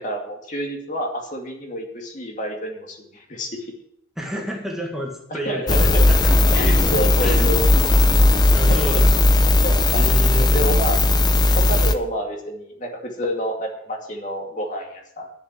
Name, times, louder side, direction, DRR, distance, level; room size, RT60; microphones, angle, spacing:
voice 1, 0.0-3.7 5.3-6.1 6.5-8.0 8.7-8.8 9.6-11.0 11.5-15.3, equal, 40° left, 2 dB, 2.3 m, -28 dB
voice 2, 4.2-6.4 7.2-7.5 8.5-9.1 9.9-10.8, equal, ahead, -1 dB, 1.8 m, -30 dB
sound 1, 5.7-11.9, left 2 dB, 20° left, 0.7 m, -16 dB
11.5 x 7.1 x 7.6 m, 0.72 s
head